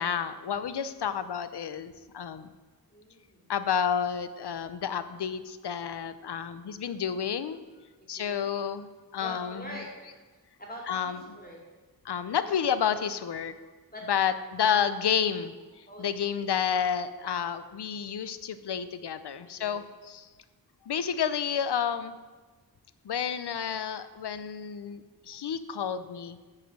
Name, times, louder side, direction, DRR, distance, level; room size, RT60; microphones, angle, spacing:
voice 1, 0.0-2.5 3.5-7.6 8.1-9.8 10.9-11.4 12.0-13.5 14.1-15.5 16.0-20.3 20.9-22.2 23.0-26.4, left 8 dB, 85° left, 12 dB, 0.7 m, -30 dB
voice 2, 2.9-3.5 8.0-8.5 9.2-10.2 10.6-11.6 12.4-12.5 13.9-14.0 14.6-14.8 15.9-16.2 19.4-19.8, equal, 25° left, -2 dB, 2.8 m, -44 dB
10.5 x 4.9 x 7.4 m, 1.3 s
wide cardioid pair, 70°, 39 cm